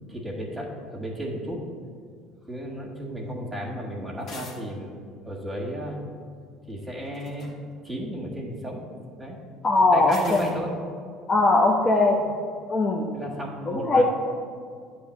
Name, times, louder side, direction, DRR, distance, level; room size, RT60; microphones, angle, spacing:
voice 1, 0.1-1.6 2.5-4.9 5.3-6.0 6.7-7.5 7.8-8.8 9.2-9.4 9.9-10.8 12.2-12.3 13.1-14.0, equal, 10° right, -3 dB, 1.6 m, -34 dB
sound 1, 4.2-4.6 7.0-7.5 10.1-10.6, left 3 dB, 50° left, 1.5 m, -42 dB
voice 2, 9.6-10.6 11.3-12.2 12.7-13.1 13.7-14.0, left 2 dB, 30° left, -1 dB, 0.7 m, -20 dB
8.3 x 3.1 x 6.4 m, 2.1 s
hypercardioid pair, 75°, 0 cm